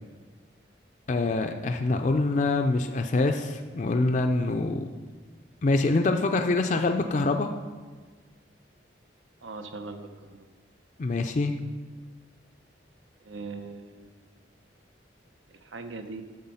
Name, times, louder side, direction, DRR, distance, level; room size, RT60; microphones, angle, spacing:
voice 1, 1.1-4.9 5.6-7.5 11.0-11.5, left 2 dB, 40° left, 5 dB, 0.4 m, -25 dB
voice 2, 9.4-10.5 13.2-14.1 15.5-16.2, right 3 dB, 85° right, 7 dB, 0.8 m, -40 dB
10.5 x 6.4 x 5.6 m, 1.4 s
head